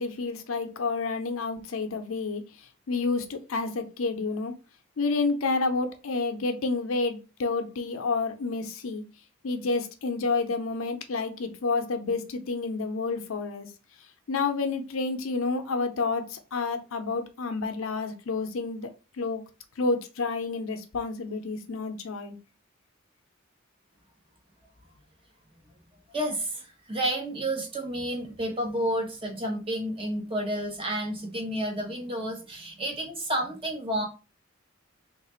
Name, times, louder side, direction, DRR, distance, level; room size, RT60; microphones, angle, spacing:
voice 1, 0.0-2.4 2.9-4.5 5.0-9.0 9.4-13.7 14.3-18.9 19.2-19.4 19.8-22.4, left 3 dB, 75° left, 0.6 m, -29 dB
voice 2, 26.1-34.1, right 1 dB, 25° right, 0.9 m, -30 dB
3.2 x 2.4 x 4.3 m
head